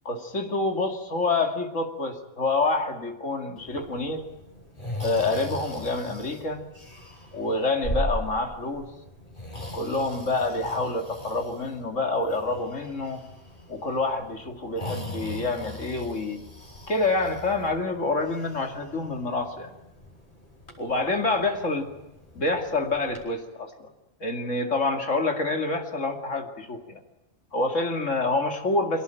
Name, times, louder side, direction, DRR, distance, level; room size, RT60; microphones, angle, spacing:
voice 1, 0.0-4.3 5.0-6.6 7.3-8.9 9.7-13.2 13.7-16.4 16.9-19.7 20.8-21.8 22.3-23.9 24.2-27.0 27.5-29.0, left 2 dB, 75° left, 4 dB, 2.8 m, -27 dB
Breathing, 3.6-23.2, equal, 40° left, 5.2 m, -39 dB
24.0 x 18.0 x 9.0 m, 0.96 s
omnidirectional pair, 1.3 m